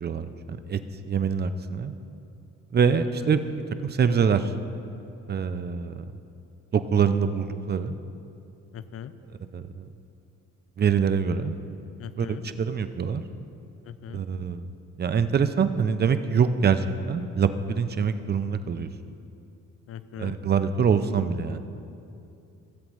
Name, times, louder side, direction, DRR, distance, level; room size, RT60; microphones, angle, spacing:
voice 1, 0.0-0.8 1.1-1.9 2.7-3.5 3.8-4.4 5.3-6.0 6.7-7.9 9.5-9.9 10.8-11.6 12.2-13.2 14.1-14.7 15.0-18.9 20.2-21.6, right 6 dB, 35° right, 10 dB, 0.5 m, -24 dB
voice 2, 8.7-9.1 12.0-12.4 13.9-14.2 19.9-20.3, left 10 dB, 50° left, 13 dB, 0.5 m, -39 dB
16.5 x 7.7 x 3.1 m, 2.6 s
cardioid pair, 90°, 30 cm